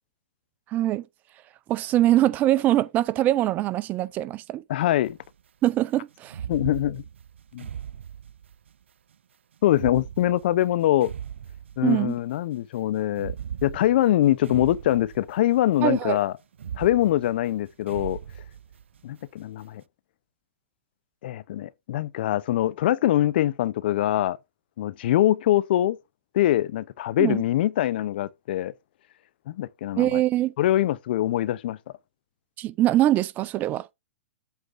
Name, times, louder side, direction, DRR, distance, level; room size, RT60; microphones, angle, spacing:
voice 1, 0.7-1.0 1.7-4.6 5.6-6.4 11.8-12.2 15.8-16.2 27.2-27.4 30.0-30.5 32.6-33.9, right 14 dB, 25° right, 0.6 m, -23 dB
voice 2, 4.7-5.2 6.5-7.0 7.5-7.7 9.6-11.1 11.8-13.3 13.6-16.3 16.8-18.2 19.0-19.8 21.2-24.4 24.8-26.0 26.3-28.7 29.5-30.1 30.6-31.8, left 13 dB, 60° left, 0.7 m, -23 dB
sound 1, 5.0-5.3 6.3-8.7 9.7-12.3 13.1-15.7 16.5-19.1, right 9 dB, 85° right, 0.4 m, -39 dB
8.2 x 3.8 x 6.4 m
hypercardioid pair, 135°, 6 cm